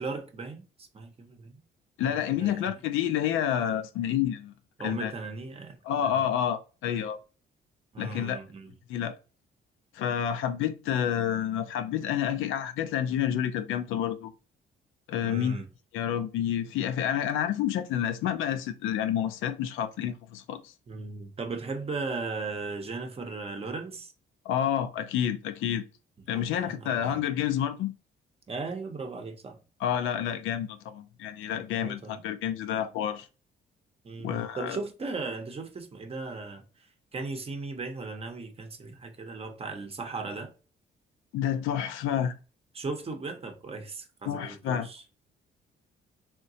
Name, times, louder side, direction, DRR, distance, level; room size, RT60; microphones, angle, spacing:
voice 1, 0.0-1.5 2.0-2.7 4.8-6.1 7.9-8.7 15.2-15.7 20.9-24.1 26.3-27.3 28.5-29.6 31.7-32.2 34.0-40.5 42.7-45.0, right 3 dB, 30° right, 0.7 m, -37 dB
voice 2, 2.0-4.5 4.8-5.1 5.8-7.2 8.0-8.4 8.9-9.2 9.9-14.3 15.1-15.6 15.9-20.7 24.5-25.8 26.3-27.9 29.8-33.3 34.2-34.8 41.3-42.3 44.3-44.9, left 10 dB, 85° left, 0.4 m, -29 dB
3.8 x 2.1 x 2.6 m
cardioid pair, 90°, 20 cm